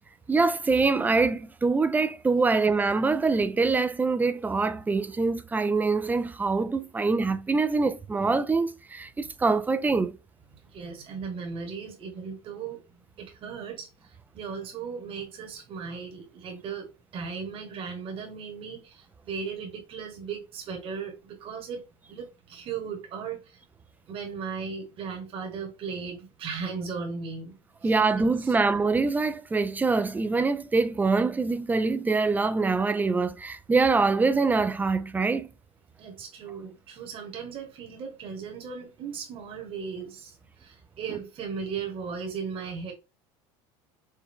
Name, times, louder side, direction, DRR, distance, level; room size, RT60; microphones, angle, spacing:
voice 1, 0.3-10.2 27.8-35.5, right 4 dB, 10° right, 0.4 m, -24 dB
voice 2, 10.7-12.8 13.2-13.9 14.3-16.9 17.1-23.6 24.1-27.6 27.8-27.9 28.4-28.5 36.0-42.9, right 6 dB, 40° right, 1.3 m, -37 dB
4.6 x 2.2 x 3.6 m
supercardioid pair, 115°, 14 cm